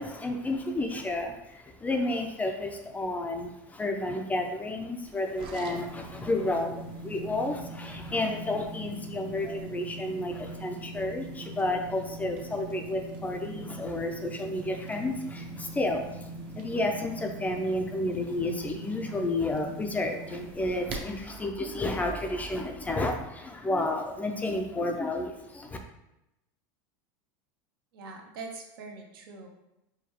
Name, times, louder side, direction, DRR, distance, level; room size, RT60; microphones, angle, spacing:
voice 1, 0.0-25.8, left 2 dB, 15° left, 4 dB, 0.4 m, -31 dB
sound 1, 5.1-21.3, right 2 dB, 45° right, 0.6 m, -42 dB
voice 2, 27.9-29.5, right 3 dB, 80° right, 3 dB, 0.7 m, -43 dB
4.9 x 2.3 x 2.9 m, 0.89 s
supercardioid pair, 125°, 12 cm